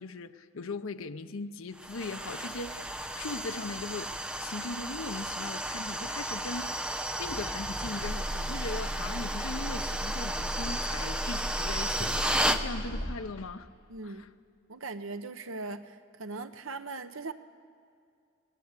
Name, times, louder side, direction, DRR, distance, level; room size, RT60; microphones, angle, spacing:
voice 1, 0.0-6.8 7.2-13.7 14.0-14.3, left 3 dB, 80° left, 0.7 m, -39 dB
sound 1, 1.8-12.6, right 1 dB, 5° right, 0.8 m, -33 dB
sound 2, 8.0-13.1, equal, 45° left, 2.4 m, -36 dB
voice 2, 13.9-14.2 14.7-17.3, right 3 dB, 70° right, 0.9 m, -39 dB
23.5 x 18.5 x 8.3 m
head